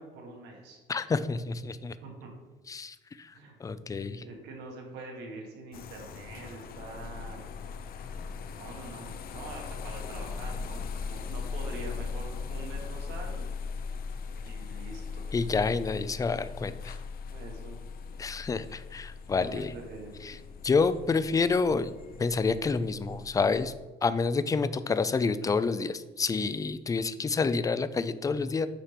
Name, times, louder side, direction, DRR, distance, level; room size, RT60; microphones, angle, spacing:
voice 1, 0.0-0.8 2.0-2.3 3.3-3.9 4.1-7.5 8.6-13.6 14.4-15.3 17.2-17.8 19.4-20.1, right 3 dB, 85° right, 1 dB, 1.8 m, -45 dB
voice 2, 0.9-2.0 2.7-3.3 3.6-4.3 15.3-17.0 18.2-19.7 20.2-20.4 20.6-21.9 22.2-23.7 24.0-28.7, left 4 dB, 20° left, 13 dB, 0.4 m, -28 dB
sound 1, 5.7-23.8, left 5 dB, 60° left, 0.8 m, -39 dB
8.9 x 3.3 x 5.7 m, 1.2 s
cardioid pair, 110°, 17 cm